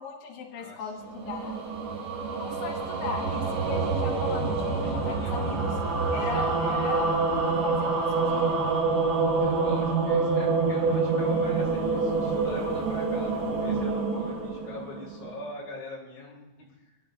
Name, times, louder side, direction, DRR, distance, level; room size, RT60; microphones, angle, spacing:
voice 1, 0.0-1.6 2.4-5.8 6.1-7.3 7.6-8.6, left 5 dB, 85° left, 1 dB, 1.6 m, -37 dB
voice 2, 0.5-1.1 4.8-5.4 6.3-6.9 9.4-16.5, left 1 dB, 40° left, -4 dB, 3.8 m, -42 dB
sound 1, 1.0-15.4, right 4 dB, 70° right, 5.5 m, -27 dB
23.5 x 10.5 x 2.6 m, 1.0 s
omnidirectional pair, 5.2 m